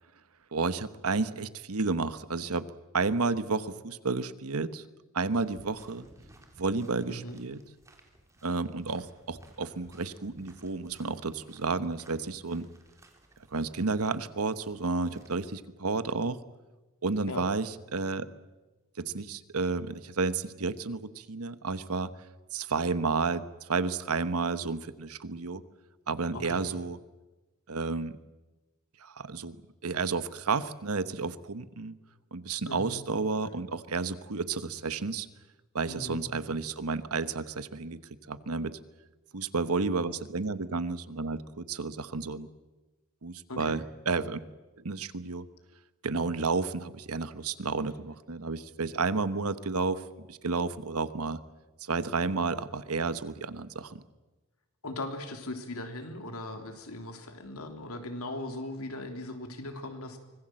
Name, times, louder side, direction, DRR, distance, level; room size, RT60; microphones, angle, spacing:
voice 1, 0.5-2.6 2.9-4.8 5.1-6.1 6.6-7.6 8.4-12.7 13.5-16.4 17.0-18.3 19.0-22.1 22.5-25.6 26.1-27.0 27.7-28.2 29.0-29.6 29.8-31.9 32.3-35.3 35.7-38.0 38.3-38.8 39.3-42.5 43.2-44.4 44.8-45.5 46.0-51.4 51.8-54.0, right 4 dB, 90° right, 13 dB, 1.2 m, -31 dB
sound 1, 5.4-15.6, right 1 dB, 15° right, 3.4 m, -59 dB
voice 2, 7.1-7.4 17.3-17.4 26.3-26.7 32.7-33.0 35.9-36.2 43.5-43.8 54.8-60.2, left 1 dB, 80° left, 5 dB, 3.2 m, -39 dB
25.0 x 20.0 x 7.7 m, 1.1 s
head